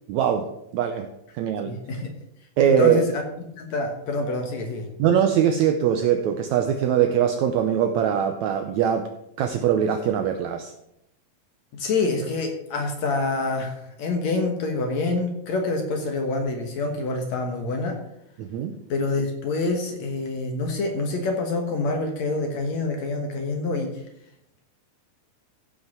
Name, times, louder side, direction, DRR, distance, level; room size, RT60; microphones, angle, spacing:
voice 1, 0.1-0.5 0.7-1.1 1.3-1.7 2.6-3.0 5.0-9.1 9.4-10.7 18.4-18.7, right 9 dB, 80° right, 6 dB, 1.6 m, -21 dB
voice 2, 1.7-2.1 2.6-3.2 3.6-4.9 11.7-18.0 18.9-23.9, left 3 dB, 60° left, 3 dB, 2.2 m, -26 dB
15.0 x 5.6 x 5.9 m, 0.79 s
omnidirectional pair, 4.2 m